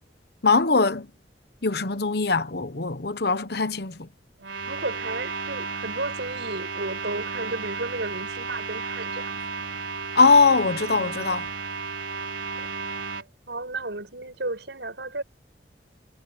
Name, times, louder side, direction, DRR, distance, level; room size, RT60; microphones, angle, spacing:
voice 1, 0.4-1.1 1.6-3.9 10.2-11.5, left 4 dB, 60° left, 1.1 m, -21 dB
sound 1, 4.4-13.2, right 5 dB, 85° right, 4.8 m, -33 dB
voice 2, 4.6-9.4 12.5-12.7 13.5-15.2, right 2 dB, 70° right, 5.9 m, -33 dB
head